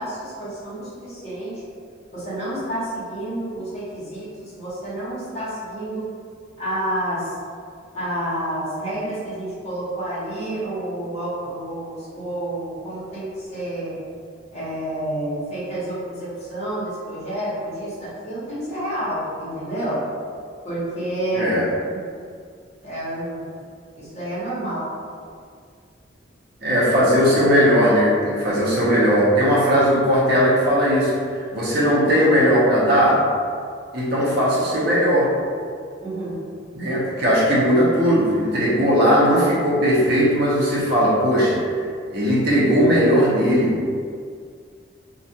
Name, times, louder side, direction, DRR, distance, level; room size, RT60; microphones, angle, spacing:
voice 1, 0.0-1.6 2.1-6.1 6.6-7.4 7.9-14.0 14.5-20.1 20.6-21.6 21.9-22.1 22.8-23.4 24.0-24.9 36.0-36.5, right 1 dB, 35° left, -10 dB, 0.9 m, -29 dB
voice 2, 21.3-21.6 26.6-31.1 31.5-33.2 33.9-35.3 36.7-41.6 42.1-43.8, equal, 50° right, -7 dB, 0.7 m, -18 dB
2.3 x 2.2 x 2.7 m, 2.2 s
head